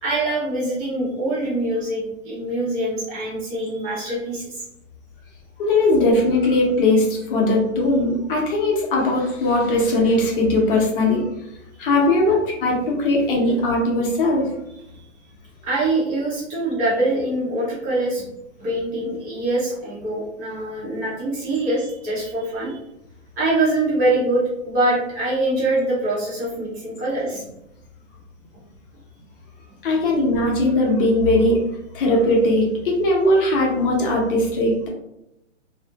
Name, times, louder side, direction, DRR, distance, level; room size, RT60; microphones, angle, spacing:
voice 1, 0.0-4.6 11.8-11.9 15.6-18.3 18.6-22.8 23.4-27.4, right 2 dB, 20° right, -6 dB, 0.7 m, -24 dB
voice 2, 5.6-11.3 11.8-14.5 29.8-31.6 31.9-34.9, left 2 dB, 45° left, -1 dB, 0.7 m, -19 dB
2.4 x 2.1 x 2.8 m, 0.84 s
hypercardioid pair, 140°, 37 cm